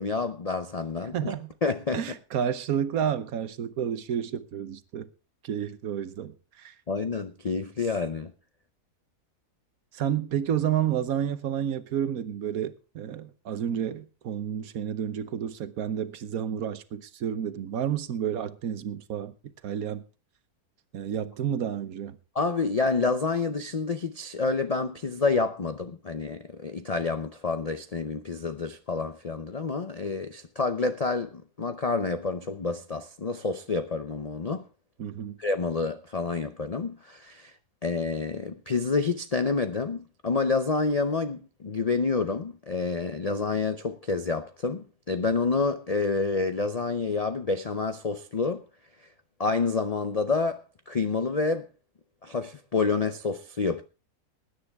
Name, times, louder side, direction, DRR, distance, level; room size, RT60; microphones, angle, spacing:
voice 1, 0.0-1.3 1.6-2.0 6.9-8.3 22.3-34.6 35.4-37.5 37.8-48.6 49.4-51.7 52.2-53.8, left 4 dB, 65° left, 0.3 m, -28 dB
voice 2, 1.1-1.5 1.9-5.1 5.4-6.7 9.9-19.3 19.6-20.0 20.9-22.2 35.0-35.4, right 9 dB, 65° right, 1.3 m, -30 dB
20.0 x 9.6 x 3.5 m
omnidirectional pair, 1.7 m